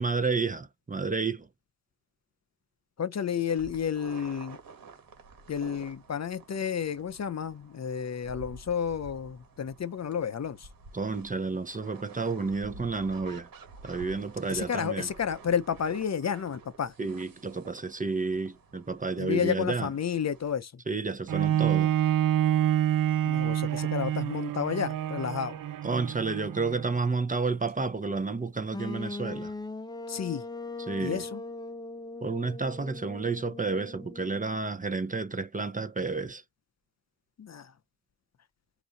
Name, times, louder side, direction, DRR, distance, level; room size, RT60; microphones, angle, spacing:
voice 1, 0.0-1.5 10.9-13.5 13.8-15.1 17.0-19.9 20.9-21.9 25.8-29.5 30.9-31.2 32.2-36.4, right 4 dB, 25° right, 0.7 m, -31 dB
voice 2, 3.0-4.6 5.5-10.7 14.5-16.9 19.2-20.7 23.3-25.6 30.1-30.4 31.0-31.4 37.4-37.7, left 7 dB, 50° left, 0.6 m, -31 dB
sound 1, 3.5-20.5, right 3 dB, 90° right, 1.9 m, -50 dB
Bowed string instrument, 21.3-26.9 27.5-27.6, right 11 dB, 70° right, 0.7 m, -27 dB
sound 2, 28.7-34.6, left 2 dB, 10° left, 0.7 m, -40 dB
4.9 x 2.6 x 4.0 m
wide cardioid pair, 90°, 34 cm